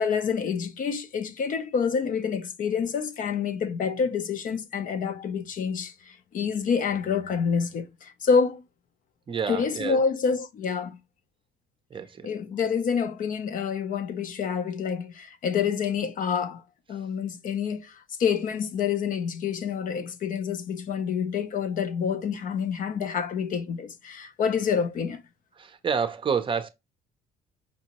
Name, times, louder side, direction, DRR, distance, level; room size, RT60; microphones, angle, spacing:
voice 1, 0.0-8.6 9.5-11.0 12.2-16.6 16.9-25.2, left 6 dB, 55° left, 0.6 m, -27 dB
voice 2, 9.3-10.0 11.9-12.3 25.6-26.7, right 6 dB, 30° right, 0.6 m, -29 dB
5.2 x 2.7 x 2.9 m
cardioid pair, 110°, 17 cm